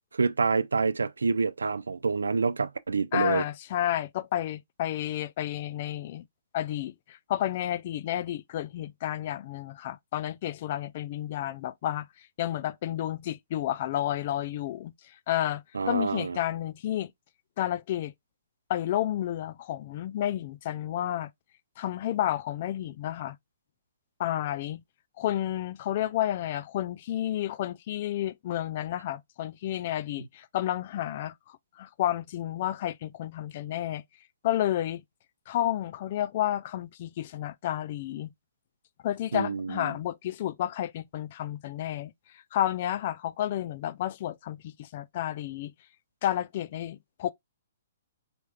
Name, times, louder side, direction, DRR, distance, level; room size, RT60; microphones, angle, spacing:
voice 1, 0.1-3.5 15.7-16.4 39.3-40.0, right 4 dB, 85° right, 0.4 m, -27 dB
voice 2, 3.1-6.2 6.5-12.1 12.4-14.9 15.3-17.1 17.6-18.1 18.7-21.3 21.8-23.4 24.2-24.8 25.2-34.0 34.4-35.0 35.5-38.3 39.0-42.1 42.5-45.7 46.2-47.3, left 12 dB, 50° left, 0.4 m, -31 dB
4.3 x 3.4 x 2.3 m
hypercardioid pair, 130°, 0 cm